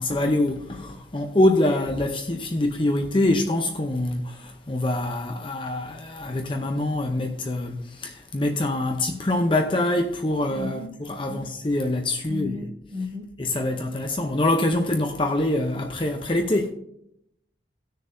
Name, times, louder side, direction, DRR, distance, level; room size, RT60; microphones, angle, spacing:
voice 1, 0.0-12.6 13.4-16.7, left 1 dB, 30° left, 0.6 m, -25 dB
voice 2, 10.5-11.5 12.3-13.3, left 3 dB, 20° right, 1.7 m, -35 dB
17.0 x 6.5 x 2.7 m
head